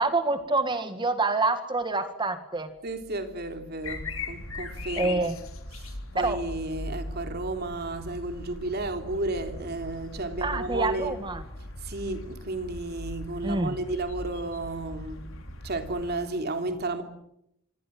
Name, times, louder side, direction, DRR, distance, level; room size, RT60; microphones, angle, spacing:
voice 1, 0.0-2.7 5.0-5.4 6.1-6.4 10.4-11.4 13.4-13.8, right 3 dB, 20° right, 1.8 m, -27 dB
voice 2, 2.8-5.3 5.8-11.2 11.8-15.3 15.6-17.0, right 2 dB, 50° right, 3.4 m, -33 dB
sound 1, 3.8-16.2, left 2 dB, 75° left, 4.1 m, -39 dB
26.5 x 25.5 x 7.7 m
head